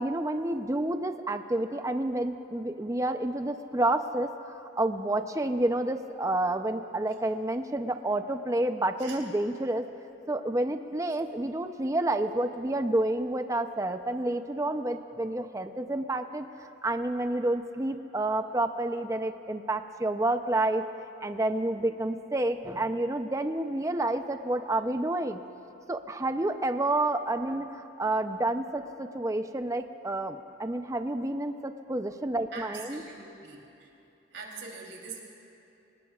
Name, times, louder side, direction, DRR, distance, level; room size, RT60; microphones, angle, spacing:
voice 1, 0.0-9.9 10.3-20.8 21.2-25.4 25.9-33.0, right 1 dB, 15° right, 8 dB, 0.5 m, -29 dB
voice 2, 32.5-33.9 34.3-35.2, right 4 dB, 85° right, -1 dB, 3.1 m, -43 dB
28.0 x 19.0 x 2.4 m, 2.9 s
head